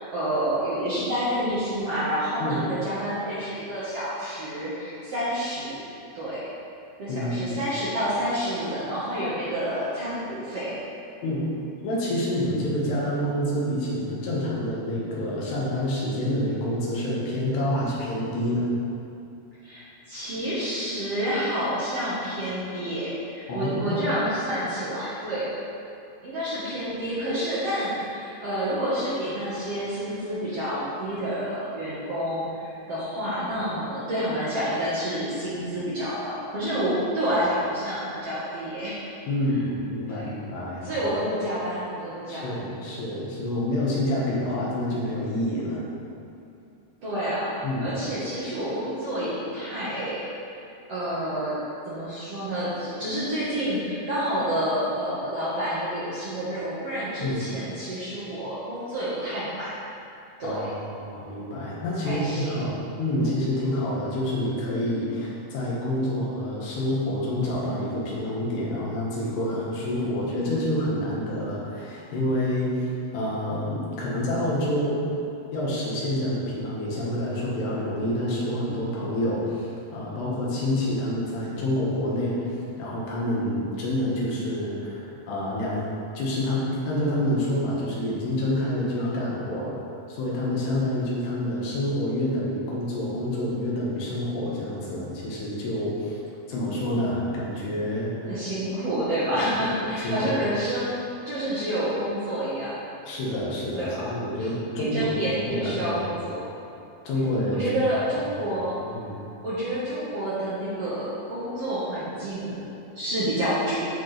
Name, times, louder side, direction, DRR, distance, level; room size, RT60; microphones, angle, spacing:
voice 1, 0.0-5.8 6.1-6.5 7.0-10.8 19.6-25.5 26.2-39.0 40.1-40.2 40.8-42.7 47.0-47.5 47.8-50.2 50.9-51.6 51.9-59.7 60.4-60.6 62.0-62.6 63.1-63.3 98.3-101.0 101.3-102.7 103.8-104.0 104.4-104.5 104.8-106.4 107.5-108.8 109.4-112.7 113.0-113.8, equal, 55° right, -11 dB, 1.7 m, -29 dB
voice 2, 7.1-7.5 11.2-11.5 11.8-18.7 23.5-24.0 39.3-41.0 42.3-45.9 47.6-47.9 57.2-57.4 60.4-75.0 75.5-85.9 86.2-89.7 90.1-96.2 96.5-98.3 100.0-100.3 103.0-105.1 105.5-106.0 107.1-107.7 108.2-108.6 108.9-109.2, left 1 dB, 85° left, -5 dB, 3.6 m, -28 dB
12.5 x 4.6 x 3.3 m, 2.7 s
omnidirectional pair, 4.6 m